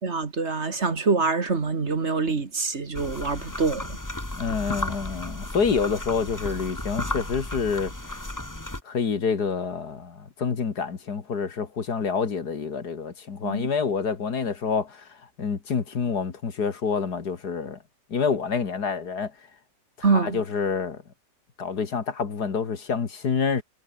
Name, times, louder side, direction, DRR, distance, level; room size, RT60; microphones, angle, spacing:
voice 1, 0.0-4.0 13.4-13.7 20.0-20.4, right 4 dB, 45° right, 2.1 m, -25 dB
sound 1, 2.9-8.8, left 1 dB, 10° left, 2.1 m, -34 dB
voice 2, 4.4-7.9 8.8-17.8 18.1-19.3 20.0-21.0 21.6-23.6, left 5 dB, 75° left, 2.6 m, -27 dB
omnidirectional pair, 1.7 m